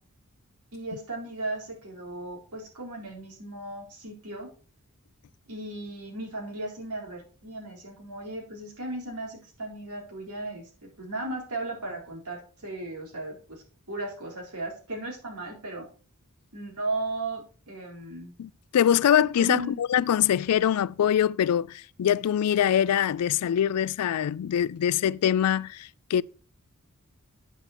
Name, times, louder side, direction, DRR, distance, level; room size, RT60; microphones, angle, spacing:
voice 1, 0.7-4.5 5.5-15.9 16.5-18.3 19.4-19.8, right 2 dB, 80° right, 3.9 m, -36 dB
voice 2, 18.4-26.2, left 9 dB, 80° left, 0.3 m, -24 dB
9.3 x 6.7 x 4.2 m
head